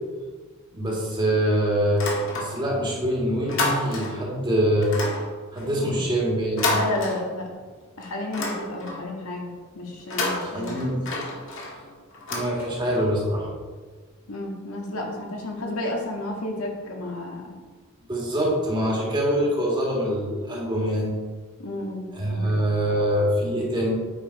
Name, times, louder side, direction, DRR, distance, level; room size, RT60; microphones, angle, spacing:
voice 1, 0.7-4.9 5.5-6.7 10.4-11.0 12.3-13.5 18.1-21.1 22.1-23.9, equal, 20° right, -3 dB, 2.0 m, -24 dB
sound 1, 1.9-2.8 3.1-4.3 4.8-7.7 8.0-9.1 9.9-13.1, left 2 dB, 60° left, 1.7 m, -30 dB
voice 2, 6.7-7.5 8.0-10.8 14.3-17.5 21.6-22.5, left 1 dB, 75° left, 0 dB, 1.7 m, -32 dB
8.6 x 5.2 x 4.7 m, 1.4 s
head